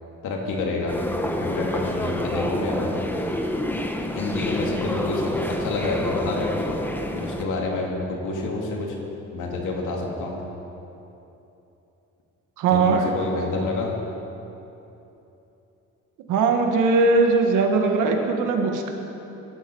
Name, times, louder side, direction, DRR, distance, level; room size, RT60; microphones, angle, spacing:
voice 1, 0.2-1.0 1.4-2.9 4.1-6.6 7.1-9.0 9.3-10.4 12.7-13.9, left 3 dB, 85° left, -1 dB, 2.8 m, -28 dB
sound 1, 0.9-7.4, left 1 dB, 5° left, 1.3 m, -28 dB
voice 2, 12.6-13.1 16.3-18.9, right 4 dB, 90° right, 3 dB, 1.7 m, -20 dB
18.0 x 12.0 x 4.7 m, 3.0 s
cardioid pair, 90°, 30 cm